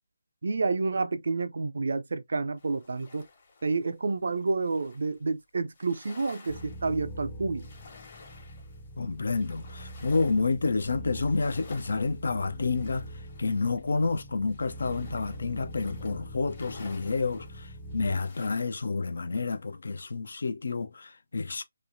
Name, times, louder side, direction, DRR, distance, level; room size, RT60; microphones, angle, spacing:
voice 1, 0.4-3.3 3.6-7.7, right 3 dB, 65° right, 0.4 m, -29 dB
sound 1, 2.6-5.3 5.7-18.5, left 3 dB, 40° left, 1.2 m, -53 dB
sound 2, 6.5-18.2, equal, 20° left, 0.5 m, -43 dB
voice 2, 9.0-13.1 13.4-21.6, left 4 dB, 65° left, 0.4 m, -29 dB
3.1 x 2.1 x 2.5 m
figure-of-eight pair, 155°, 0 cm